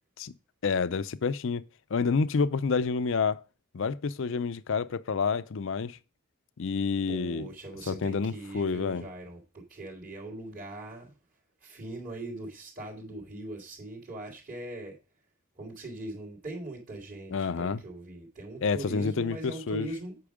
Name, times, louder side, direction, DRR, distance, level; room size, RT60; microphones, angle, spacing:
voice 1, 0.6-1.6 1.9-3.4 3.7-6.0 6.6-7.5 7.9-9.0 17.3-17.8 18.6-19.9, left 5 dB, 65° left, 0.5 m, -28 dB
voice 2, 7.1-11.1 11.6-15.0 15.6-20.2, right 2 dB, 45° right, 3.0 m, -41 dB
8.6 x 6.1 x 4.9 m
head